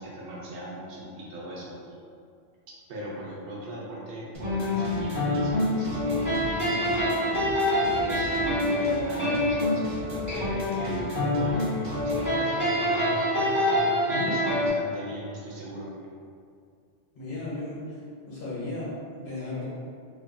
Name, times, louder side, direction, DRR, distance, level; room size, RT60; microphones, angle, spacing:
voice 1, 0.0-2.0 2.9-7.6 7.9-13.7 14.2-15.9, right 1 dB, 85° right, -5 dB, 1.0 m, -39 dB
sound 1, 4.3-12.3, right 1 dB, 45° right, 0.4 m, -40 dB
sound 2, 4.4-14.7, left 1 dB, 15° right, 1.0 m, -26 dB
voice 2, 14.0-14.3 17.1-18.0 18.3-19.6, left 2 dB, 55° left, -9 dB, 1.1 m, -35 dB
2.7 x 2.5 x 2.2 m, 2.3 s
omnidirectional pair, 1.2 m